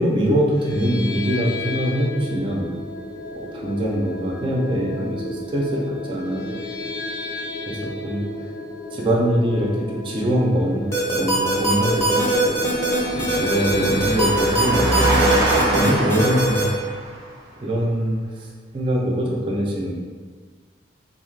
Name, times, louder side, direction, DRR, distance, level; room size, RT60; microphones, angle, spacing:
voice 1, 0.0-2.6 3.5-6.4 6.8-6.9 7.7-8.2 8.9-12.6 13.1-15.1 15.5-16.7 17.6-18.5 18.7-20.0, equal, 25° right, -3 dB, 0.4 m, -23 dB
sound 1, 0.6-16.7, left 2 dB, 70° left, 0.4 m, -33 dB
sound 2, 10.9-16.6, right 2 dB, 15° left, 0.6 m, -21 dB
Engine, 11.6-17.3, right 1 dB, 85° right, 0.5 m, -25 dB
2.6 x 2.4 x 3.1 m, 1.5 s
head